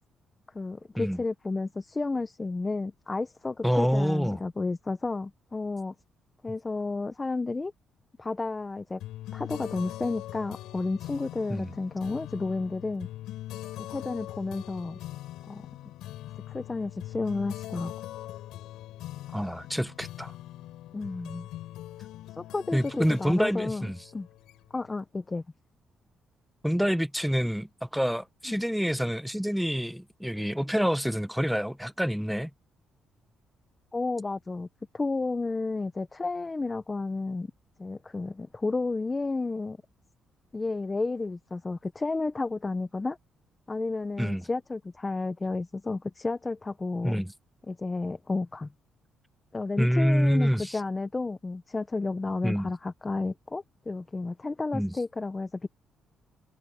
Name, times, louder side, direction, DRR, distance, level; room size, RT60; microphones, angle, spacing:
voice 1, 0.5-5.9 6.4-7.7 8.2-9.0 9.3-13.1 13.8-15.0 15.5-15.6 16.5-17.9 20.9-21.5 22.4-24.3 24.7-25.4 28.5-28.6 33.9-34.7 34.9-37.5 37.8-39.8 40.5-43.2 43.7-47.2 47.7-48.7 49.5-55.7, left 3 dB, 25° left, 1.1 m, -32 dB
voice 2, 3.6-4.4 11.5-11.7 19.3-20.3 22.7-24.0 26.6-32.5 44.2-44.4 47.0-47.3 49.8-50.8 52.4-52.7 54.7-54.9, equal, ahead, 1.5 m, -27 dB
sound 1, 9.0-24.9, left 14 dB, 90° left, 6.9 m, -42 dB
cardioid pair, 90°, 0 cm